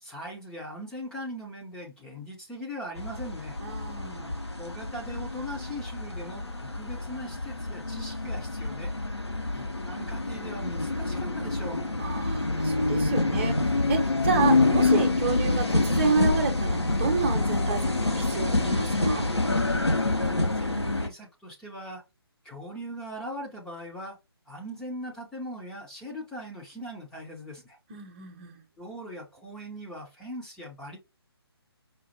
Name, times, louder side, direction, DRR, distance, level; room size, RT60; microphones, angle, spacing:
voice 1, 0.0-3.6 4.6-8.9 9.5-11.8 20.2-22.0 22.4-24.2 24.5-27.8 28.8-31.0, equal, 5° left, 0.6 m, -40 dB
sound 1, 3.0-21.1, left 2 dB, 90° left, 1.0 m, -27 dB
voice 2, 3.6-4.4 12.0-19.3 27.9-28.6, right 5 dB, 30° right, 0.9 m, -30 dB
5.1 x 2.5 x 2.8 m
figure-of-eight pair, 145°, 14 cm